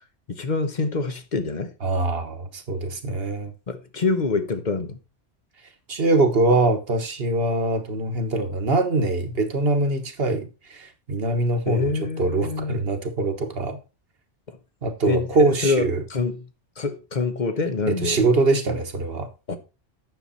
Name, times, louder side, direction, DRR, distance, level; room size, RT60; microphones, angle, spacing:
voice 1, 0.3-1.7 3.7-5.0 11.6-12.8 14.5-14.6 15.1-16.5 16.8-18.3 19.5-19.6, left 4 dB, 40° left, 1.2 m, -26 dB
voice 2, 1.8-3.5 5.9-11.9 12.2-13.8 14.8-16.0 17.9-19.3, right 2 dB, 55° right, 1.4 m, -23 dB
9.5 x 6.8 x 4.2 m
omnidirectional pair, 1.2 m